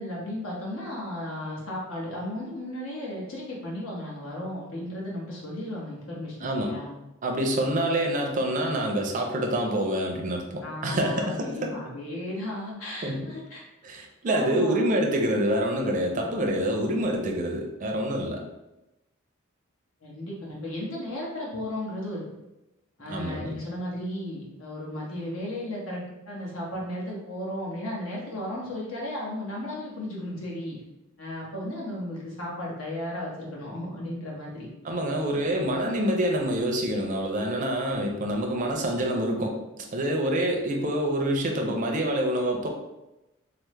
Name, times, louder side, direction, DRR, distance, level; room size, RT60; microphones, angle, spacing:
voice 1, 0.0-6.9 10.6-13.6 14.2-14.8 20.0-22.2 23.0-30.8 31.2-34.7, left 1 dB, 75° left, -3 dB, 1.0 m, -35 dB
voice 2, 6.4-6.7 7.2-11.7 13.0-13.3 13.8-18.4 23.1-23.6 34.8-39.6 39.9-42.7, right 1 dB, 40° right, 1 dB, 0.4 m, -26 dB
3.3 x 2.0 x 3.1 m, 0.96 s
head